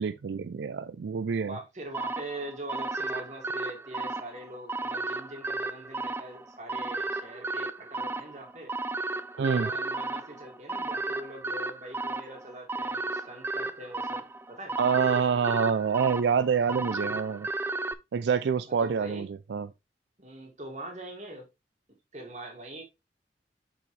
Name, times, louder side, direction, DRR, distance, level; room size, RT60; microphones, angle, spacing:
voice 1, 0.0-1.6 9.4-9.7 14.8-17.5 18.1-19.7, right 6 dB, 90° right, 0.4 m, -27 dB
voice 2, 1.4-8.7 9.4-14.8 18.8-19.3 20.2-21.5 22.1-22.8, right 1 dB, 40° right, 2.2 m, -42 dB
sound 1, 1.9-17.9, right 3 dB, 15° right, 0.3 m, -34 dB
6.2 x 6.1 x 3.2 m
head